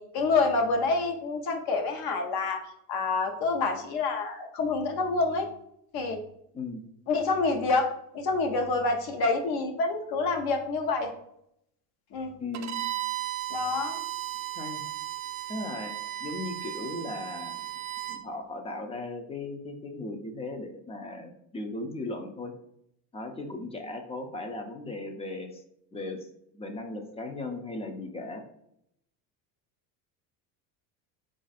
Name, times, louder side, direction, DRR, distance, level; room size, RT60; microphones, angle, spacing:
voice 1, 0.0-2.6 2.9-5.5 5.9-6.2 7.1-11.1 12.1-12.3 13.5-14.0, left 3 dB, 65° left, 4 dB, 0.8 m, -27 dB
voice 2, 12.4-12.9 14.6-14.8 15.5-15.9 16.2-17.7 18.1-22.5 23.1-25.6 25.9-26.3 26.5-28.5, left 2 dB, 15° left, 5 dB, 0.4 m, -37 dB
Bowed string instrument, 12.5-18.2, right 13 dB, 45° right, 0.5 m, -35 dB
4.1 x 2.5 x 4.0 m, 0.75 s
cardioid pair, 140°, 40 cm